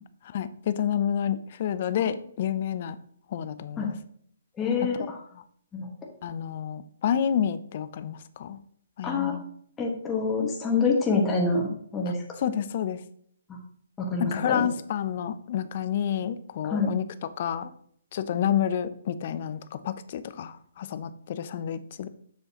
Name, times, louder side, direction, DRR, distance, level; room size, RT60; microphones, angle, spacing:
voice 1, 0.3-3.0 3.3-3.9 5.0-5.1 5.3-5.4 6.2-8.6 9.0-9.4 12.1-13.0 14.2-17.7 18.1-22.1, left 9 dB, 45° left, 14 dB, 0.5 m, -29 dB
voice 2, 4.6-5.2 5.7-5.9 9.0-9.4 9.8-12.2 14.0-14.7 16.6-16.9, left 4 dB, 15° left, -1 dB, 1.5 m, -26 dB
7.4 x 6.3 x 2.9 m, 0.64 s
figure-of-eight pair, 135°, 0 cm